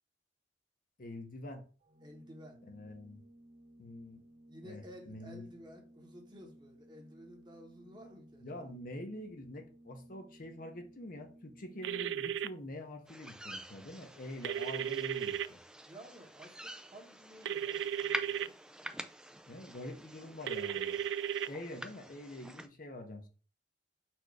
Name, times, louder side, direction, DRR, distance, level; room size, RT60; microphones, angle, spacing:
voice 1, 1.0-1.6 2.7-3.2 3.8-4.2 4.6-5.5 8.4-15.6 19.5-21.0 21.5-23.3, left 1 dB, 50° left, 0.9 m, -46 dB
Organ, 1.8-12.5, right 1 dB, 45° right, 1.0 m, -59 dB
voice 2, 2.0-2.6 4.5-8.5 15.8-18.5, equal, 25° right, 1.1 m, -53 dB
sound 1, 11.8-12.5 14.4-15.5 17.4-18.5 20.5-21.5, right 9 dB, 90° right, 0.3 m, -35 dB
sound 2, 13.1-22.7, right 1 dB, 5° right, 0.4 m, -47 dB
4.4 x 2.6 x 4.6 m
head